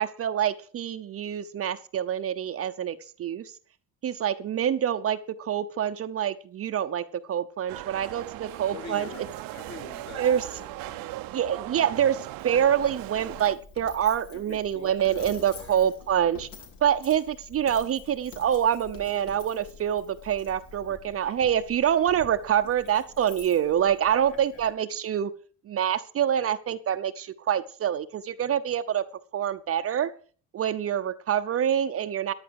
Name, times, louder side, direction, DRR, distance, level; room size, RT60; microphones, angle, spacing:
voice 1, 0.0-3.6 4.0-9.1 10.2-10.4 11.3-16.5 16.8-25.3 25.6-29.0 29.3-30.1 30.5-32.3, right 9 dB, 40° right, 10 dB, 0.8 m, -26 dB
sound 1, 7.7-13.5, right 17 dB, 75° right, 0.8 m, -38 dB
voice 2, 8.7-11.2 14.3-15.9 20.9-21.3 24.3-24.6, left 5 dB, 45° left, 3 dB, 3.8 m, -46 dB
Coin (dropping), 12.4-24.7, left 4 dB, 65° left, 3.4 m, -48 dB
14.0 x 10.5 x 4.7 m, 0.41 s
cardioid pair, 125°, 35 cm